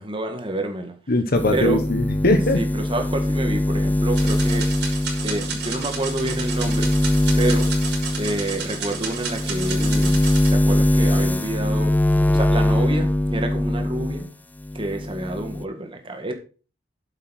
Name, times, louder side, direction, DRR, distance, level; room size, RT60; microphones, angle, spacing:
voice 1, 0.0-0.9 1.5-1.8 2.6-5.0 5.2-7.0 7.4-7.7 8.2-11.9 12.3-14.3 14.7-16.3, right 2 dB, 30° right, 1.8 m, -28 dB
voice 2, 1.1-2.6, left 2 dB, 55° left, 1.1 m, -20 dB
sound 1, 1.3-14.3 14.6-15.6, left 1 dB, 10° left, 0.4 m, -22 dB
sound 2, 4.1-10.5, right 6 dB, 65° right, 3.8 m, -32 dB
9.3 x 7.4 x 4.2 m
head